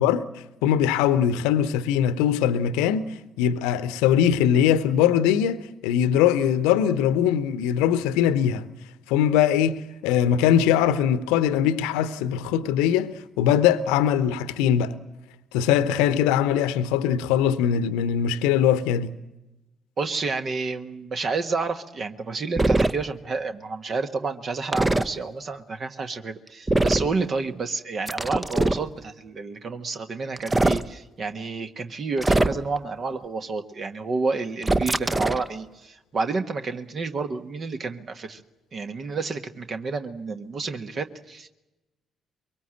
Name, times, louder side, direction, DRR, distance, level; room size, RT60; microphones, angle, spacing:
voice 1, 0.0-8.7 9.1-14.9 15.5-19.1, left 9 dB, 65° left, 0.9 m, -21 dB
voice 2, 20.0-38.4 38.7-41.5, right 4 dB, 45° right, 1.5 m, -30 dB
sound 1, 22.6-22.9 24.7-25.1 26.7-27.1 28.1-28.8 30.4-30.8 32.2-32.8 34.6-35.5, right 2 dB, 15° right, 0.9 m, -22 dB
23.5 x 23.0 x 7.7 m
figure-of-eight pair, 45°, 0 cm